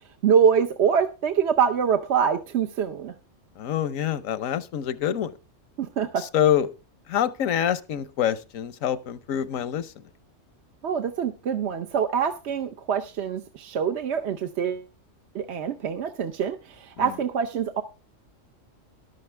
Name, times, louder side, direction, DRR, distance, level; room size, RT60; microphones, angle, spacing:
voice 1, 0.2-3.1 5.8-6.3 10.8-14.9 15.3-17.8, right 7 dB, 60° right, 6 dB, 1.0 m, -24 dB
voice 2, 3.6-5.3 6.2-6.7 7.1-9.9 17.0-17.1, left 10 dB, 85° left, 17 dB, 1.2 m, -26 dB
13.5 x 11.5 x 3.3 m, 0.29 s
omnidirectional pair, 1.3 m